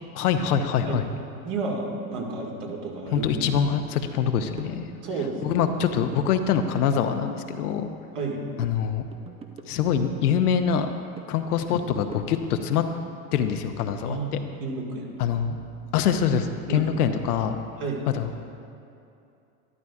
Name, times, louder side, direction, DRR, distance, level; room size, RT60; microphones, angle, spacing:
voice 1, 0.1-1.0 3.1-4.9 5.4-7.9 8.6-9.0 9.7-10.9 11.3-12.8 13.3-14.2 15.2-15.6 15.9-17.6 18.1-18.4, left 8 dB, 85° left, 7 dB, 0.8 m, -24 dB
voice 2, 1.4-3.3 5.0-5.6 8.2-8.4 14.0-15.1 16.7-16.9 17.8-18.1, right 3 dB, 45° right, -1 dB, 1.9 m, -31 dB
sound 1, 2.7-2.8 3.2-3.3 3.6-3.8 4.1-5.3 5.7-6.3 6.6-8.3 8.6-10.4 10.7-12.6, right 5 dB, 15° right, 0.4 m, -45 dB
12.5 x 11.0 x 2.4 m, 2.6 s
hypercardioid pair, 110°, 44 cm